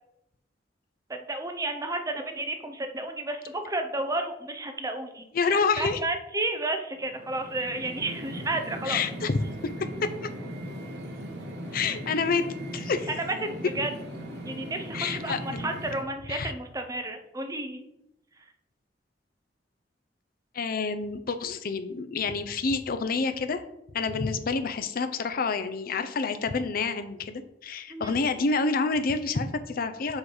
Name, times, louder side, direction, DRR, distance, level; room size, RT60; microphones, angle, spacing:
voice 1, 1.1-9.0 13.2-13.9 14.4-17.8 27.9-28.2, right 2 dB, 20° right, 6 dB, 0.6 m, -32 dB
voice 2, 5.3-6.0 8.9-9.4 9.8-9.9 10.2-10.3 11.7-12.5 12.7-13.1 14.9-15.7 16.3-16.5 20.5-23.6 23.9-30.2, left 4 dB, 55° left, 9 dB, 0.5 m, -28 dB
sound 1, 7.0-16.0, equal, 65° right, 1.1 m, -38 dB
7.4 x 3.1 x 4.8 m, 0.85 s
head